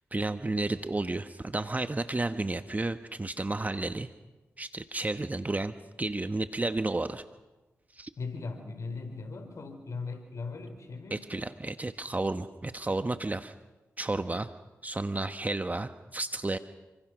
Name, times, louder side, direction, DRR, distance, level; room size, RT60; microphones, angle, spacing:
voice 1, 0.1-4.1 4.6-7.2 7.9-8.1 11.1-13.5 14.0-14.5 14.8-16.6, right 2 dB, 30° right, 9 dB, 1.2 m, -32 dB
voice 2, 8.2-11.5, left 4 dB, 65° left, 7 dB, 4.4 m, -39 dB
29.5 x 25.0 x 6.3 m, 1.1 s
supercardioid pair, 40°, 6 cm